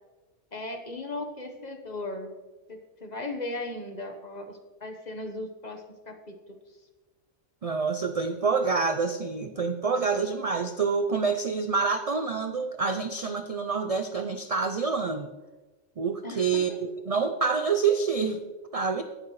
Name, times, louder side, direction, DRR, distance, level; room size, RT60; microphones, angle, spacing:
voice 1, 0.5-2.3 2.7-6.4 16.2-16.6, left 2 dB, 35° left, 4 dB, 1.2 m, -37 dB
voice 2, 7.6-15.3 16.0-18.4 18.7-19.0, right 5 dB, 50° right, 7 dB, 0.4 m, -27 dB
18.5 x 7.4 x 3.1 m, 1.2 s
omnidirectional pair, 1.3 m